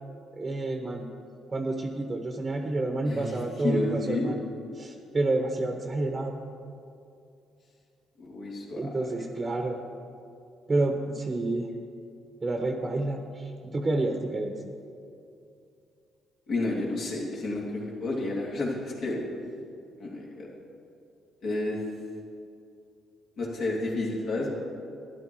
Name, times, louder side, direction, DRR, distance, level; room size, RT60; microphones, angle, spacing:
voice 1, 0.3-1.1 1.5-4.4 4.8-6.3 8.7-9.8 10.7-11.7 12.4-14.6, right 2 dB, 25° right, 4 dB, 0.9 m, -29 dB
voice 2, 3.0-4.3 8.2-8.9 16.5-19.2 20.0-20.5 21.4-21.8 23.4-24.5, left 2 dB, 65° left, -3 dB, 2.8 m, -31 dB
12.0 x 11.0 x 4.6 m, 2.6 s
cardioid pair, 85°, 0 cm